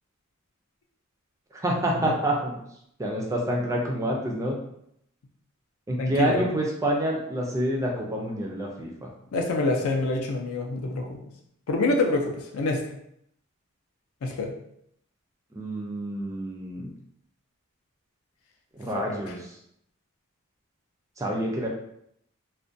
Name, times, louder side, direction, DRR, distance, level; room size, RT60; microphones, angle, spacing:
voice 1, 1.5-2.5 3.0-4.6 5.9-9.1 15.5-16.9 18.8-19.4 21.2-21.7, right 1 dB, 15° right, -1 dB, 0.3 m, -27 dB
voice 2, 6.0-6.5 9.3-11.2 11.7-12.8 14.2-14.5 18.9-19.4, left 2 dB, 75° left, 2 dB, 0.4 m, -26 dB
2.4 x 2.1 x 2.5 m, 0.73 s
head